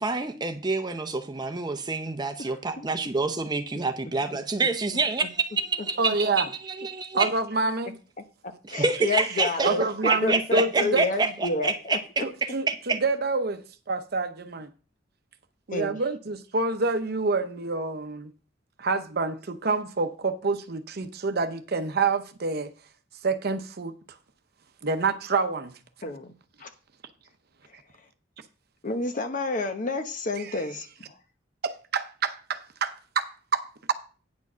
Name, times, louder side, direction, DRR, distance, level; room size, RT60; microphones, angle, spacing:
voice 1, 0.0-6.0 6.4-6.5 6.8-7.3 8.7-9.7 10.0-13.0, right 3 dB, 20° right, 0.7 m, -27 dB
voice 2, 2.5-2.9 5.8-5.9 8.7-9.8 10.2-12.0 15.7-15.9 26.0-26.3 26.6-26.7 28.8-30.9, left 3 dB, 40° left, 1.0 m, -29 dB
voice 3, 6.0-6.5 6.9-8.0 9.6-11.0 12.2-14.7 15.7-18.3 18.8-22.7 23.2-23.9 24.8-25.8 30.4-30.6 31.6-33.9, right 3 dB, 55° right, 0.8 m, -27 dB
9.4 x 4.7 x 6.1 m
head